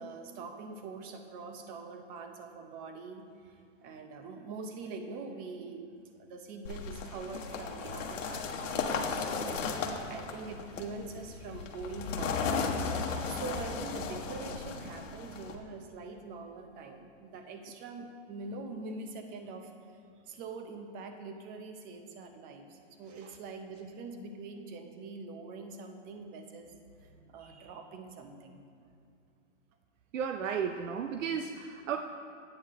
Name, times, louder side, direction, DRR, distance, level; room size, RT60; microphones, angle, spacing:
voice 1, 0.0-5.8 6.2-12.6 13.3-19.7 20.3-26.7 27.0-28.6, right 3 dB, 25° right, 5 dB, 0.7 m, -44 dB
sound 1, 6.6-15.5, left 5 dB, 85° left, 1.1 m, -35 dB
voice 2, 30.1-32.0, right 7 dB, 90° right, 6 dB, 0.6 m, -33 dB
10.0 x 8.8 x 3.7 m, 2.4 s
hypercardioid pair, 145°, 37 cm